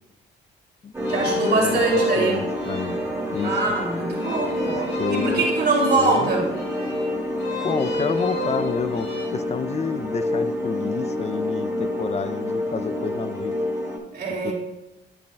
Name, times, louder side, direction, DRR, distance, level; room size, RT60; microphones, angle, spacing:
sound 1, 0.9-14.0, left 1 dB, 15° right, 2.1 m, -28 dB
sound 2, 1.0-9.2, left 1 dB, 85° left, 2.9 m, -34 dB
voice 1, 1.1-2.5 3.4-6.5 14.1-14.5, right 3 dB, 55° right, -3 dB, 2.9 m, -23 dB
voice 2, 2.2-3.0 3.3-3.6 5.0-5.4 6.0-6.3 7.6-13.6 14.4-14.5, left 6 dB, 35° left, 12 dB, 0.5 m, -29 dB
9.2 x 8.6 x 2.3 m, 0.98 s
cardioid pair, 90°, 20 cm